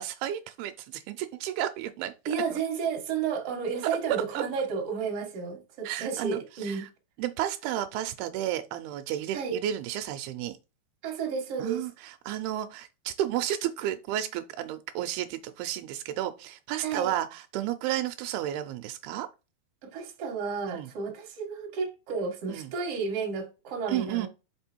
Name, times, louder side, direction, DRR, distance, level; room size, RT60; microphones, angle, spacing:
voice 1, 0.0-2.1 2.5-2.6 4.3-4.4 5.8-6.9 7.2-10.6 11.6-19.3 20.7-20.9 22.5-22.7 23.9-24.3, right 12 dB, 85° right, 2.6 m, -32 dB
voice 2, 2.3-6.8 9.3-9.6 11.0-11.8 16.8-17.1 19.8-24.3, right 5 dB, 50° right, 2.3 m, -32 dB
5.9 x 5.5 x 4.4 m
omnidirectional pair, 4.6 m